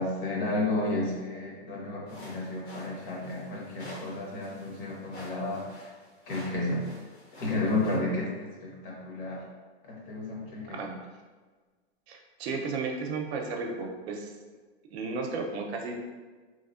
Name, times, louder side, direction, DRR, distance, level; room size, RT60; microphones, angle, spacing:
voice 1, 0.0-5.7 6.3-6.8 7.4-9.4 9.8-10.9, left 2 dB, 55° left, -2 dB, 0.9 m, -32 dB
sound 1, 2.1-8.0, left 1 dB, 80° left, 1.3 m, -48 dB
voice 2, 12.1-14.3 14.9-15.9, right 4 dB, 75° right, 2 dB, 0.6 m, -34 dB
3.0 x 2.0 x 2.4 m, 1.4 s
supercardioid pair, 150°, 33 cm